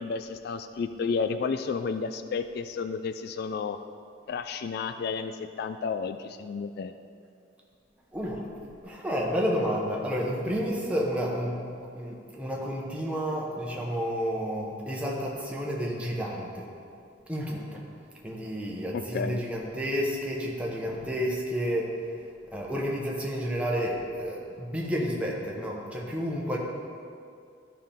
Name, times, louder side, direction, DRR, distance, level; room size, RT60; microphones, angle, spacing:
voice 1, 0.0-3.8 4.3-6.9 18.9-19.4, left 5 dB, 55° left, 10 dB, 0.3 m, -32 dB
voice 2, 8.1-8.4 8.8-11.6 11.9-16.7 17.3-17.8 18.2-21.9 22.5-26.6, equal, 5° right, -3 dB, 1.1 m, -30 dB
12.5 x 5.7 x 3.6 m, 2.4 s
head